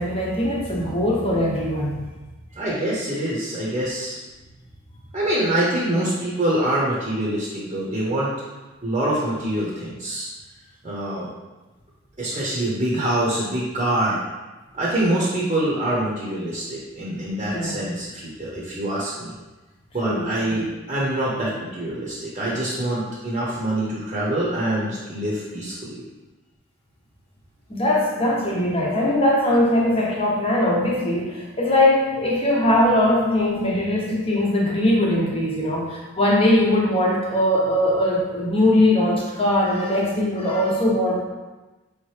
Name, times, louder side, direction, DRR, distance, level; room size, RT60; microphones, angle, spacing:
voice 1, 0.0-2.1 17.4-17.8 20.0-20.6 27.7-41.2, left 1 dB, 30° left, -3 dB, 0.9 m, -21 dB
voice 2, 2.5-4.2 5.1-8.3 8.8-10.3 10.8-11.3 12.2-14.2 14.7-19.3 19.9-26.0, right 1 dB, 30° right, -6 dB, 0.8 m, -25 dB
5.0 x 3.0 x 3.2 m, 1.2 s
head